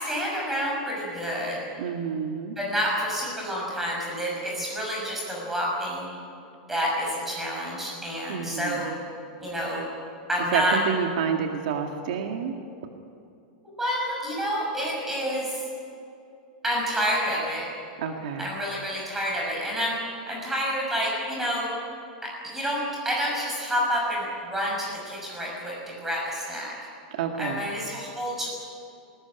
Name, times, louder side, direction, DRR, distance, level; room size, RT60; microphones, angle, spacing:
voice 1, 0.0-1.6 2.6-6.1 6.7-9.0 9.4-9.8 10.3-10.8 13.8-15.6 16.6-17.7 18.4-20.0 20.3-21.7 22.2-26.7 27.4-28.5, equal, 5° right, -3 dB, 6.2 m, -28 dB
voice 2, 1.8-2.6 8.3-8.9 10.5-12.5 18.0-18.5 27.1-27.6, right 7 dB, 65° right, 3 dB, 2.0 m, -29 dB
20.0 x 20.0 x 9.9 m, 2.5 s
supercardioid pair, 180°, 5 cm